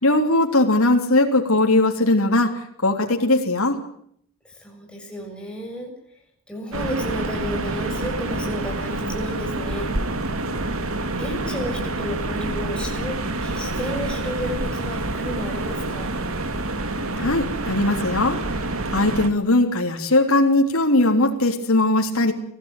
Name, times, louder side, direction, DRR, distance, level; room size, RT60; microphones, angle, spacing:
voice 1, 0.0-3.8 17.2-18.4 18.9-22.3, left 2 dB, 85° left, 2 dB, 3.4 m, -19 dB
voice 2, 4.4-5.9 6.5-9.9 11.2-16.1, equal, 5° left, 0 dB, 7.2 m, -32 dB
sound 1, 6.7-19.3, right 2 dB, 75° right, 2.4 m, -27 dB
24.0 x 16.0 x 9.2 m, 0.66 s
head